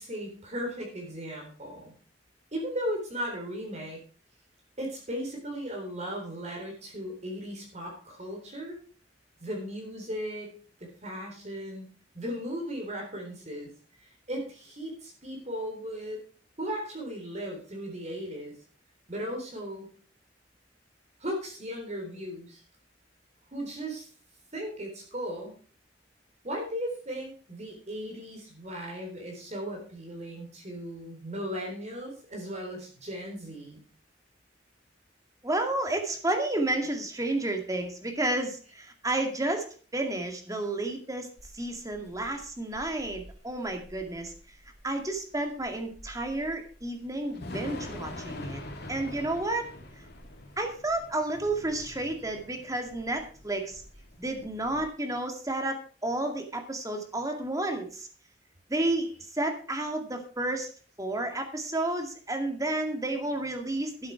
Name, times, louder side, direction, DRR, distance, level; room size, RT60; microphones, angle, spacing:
voice 1, 0.0-1.9 2.5-4.0 4.8-8.8 9.4-10.5 10.8-11.9 12.1-13.7 14.3-16.2 16.6-18.5 19.1-19.9 21.2-22.6 23.5-24.1 24.5-25.6 26.4-33.8, equal, 40° right, 1 dB, 3.8 m, -36 dB
voice 2, 35.4-41.3 41.5-44.3 44.8-48.6 48.9-49.7 50.6-53.8 54.2-58.1 58.7-60.7 61.0-64.1, right 2 dB, 20° right, 4 dB, 2.2 m, -31 dB
Thunder / Rain, 41.4-54.9, left 1 dB, 60° left, 2.9 m, -45 dB
12.5 x 9.5 x 4.6 m, 0.40 s
head